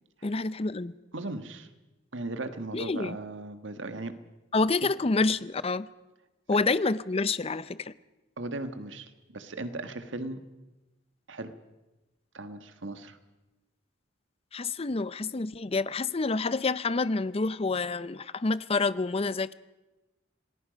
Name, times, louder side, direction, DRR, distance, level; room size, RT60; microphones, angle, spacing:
voice 1, 0.2-0.9 2.7-3.2 4.5-5.9 6.5-7.9 14.5-19.5, left 3 dB, 30° left, 16 dB, 0.6 m, -28 dB
voice 2, 1.1-1.7 2.1-4.2 4.8-4.9 8.4-10.4 11.3-11.5 12.3-13.2, right 2 dB, 85° right, 9 dB, 1.5 m, -37 dB
27.5 x 19.5 x 5.3 m, 1.1 s
head